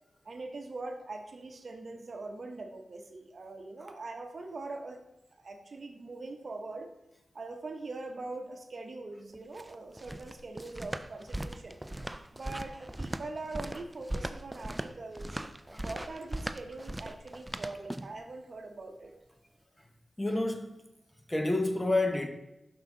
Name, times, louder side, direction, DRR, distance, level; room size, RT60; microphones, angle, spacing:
voice 1, 0.2-5.0 5.4-6.9 7.3-11.8 12.3-15.4 15.7-19.1, right 3 dB, 55° right, 0.8 m, -42 dB
sound 1, 9.3-18.2, right 1 dB, 15° right, 0.4 m, -39 dB
voice 2, 20.2-20.8 21.3-22.3, left 2 dB, 15° left, 0.9 m, -29 dB
6.1 x 5.7 x 3.7 m
cardioid pair, 60°, 0 cm